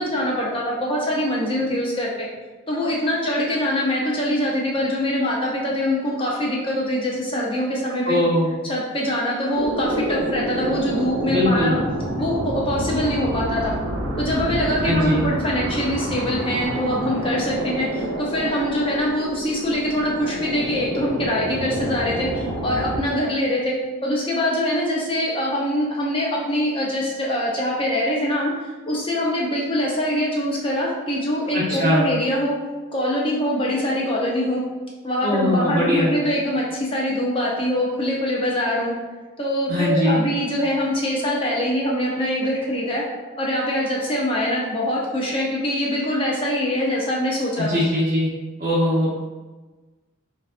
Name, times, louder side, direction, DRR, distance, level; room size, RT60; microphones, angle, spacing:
voice 1, 0.0-2.3 2.7-8.2 8.6-11.8 12.2-13.7 14.2-23.8 24.0-32.5 32.9-34.6 35.0-38.9 39.4-43.0 43.4-47.8, left 1 dB, 25° left, -3 dB, 0.5 m, -23 dB
voice 2, 8.1-8.5 11.3-11.8 14.8-15.3 31.5-32.0 35.2-36.1 39.7-40.2 47.6-48.3 48.6-49.1, left 1 dB, 40° right, -9 dB, 0.6 m, -20 dB
sound 1, 9.5-23.0, right 1 dB, 90° right, 0.6 m, -28 dB
3.7 x 2.3 x 2.4 m, 1.2 s
head